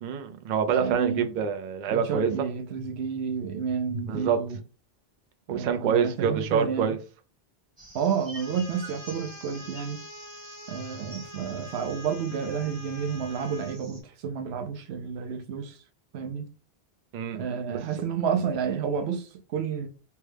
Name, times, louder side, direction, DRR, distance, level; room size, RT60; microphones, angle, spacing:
voice 1, 0.0-2.3 4.1-4.4 5.5-7.0 17.1-17.6, right 7 dB, 55° right, 0.6 m, -26 dB
voice 2, 0.7-1.3 1.9-4.6 5.5-7.0 7.9-10.0 10.7-15.8 16.1-16.5 17.3-19.9, right 6 dB, 85° right, 0.8 m, -30 dB
sound 1, 7.8-14.0, right 1 dB, 25° right, 0.9 m, -48 dB
Trumpet, 8.4-13.8, left 2 dB, 40° left, 0.6 m, -46 dB
3.4 x 2.2 x 3.2 m
omnidirectional pair, 1.1 m